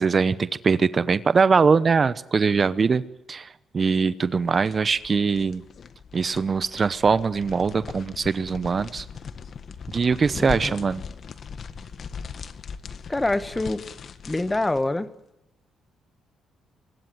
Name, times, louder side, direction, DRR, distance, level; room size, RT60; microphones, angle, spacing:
voice 1, 0.0-3.0 3.3-3.5 3.7-5.6 6.1-9.0 9.9-11.0, right 5 dB, 40° right, 15 dB, 0.9 m, -22 dB
sound 1, 4.2-14.9, left 6 dB, 50° left, 1.7 m, -39 dB
voice 2, 10.4-10.7 13.1-13.8 14.3-15.1, left 2 dB, 15° left, 13 dB, 1.5 m, -25 dB
24.5 x 21.5 x 9.4 m, 0.87 s
cardioid pair, 90°, 0 cm